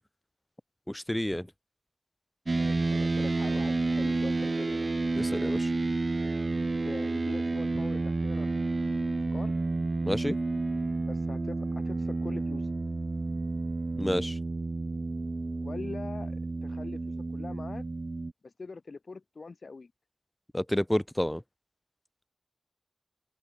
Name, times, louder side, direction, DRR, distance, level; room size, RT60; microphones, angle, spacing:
voice 1, 0.9-1.5 5.2-5.7 10.1-10.4 14.0-14.4 20.5-21.4, left 1 dB, 10° left, 3.9 m, -29 dB
voice 2, 2.5-4.9 6.8-9.0 9.3-9.6 11.1-12.7 15.6-17.9 18.4-19.9, left 4 dB, 75° left, 6.2 m, -43 dB
sound 1, 2.5-18.3, right 3 dB, 60° right, 6.7 m, -30 dB
cardioid pair, 45°, 0 cm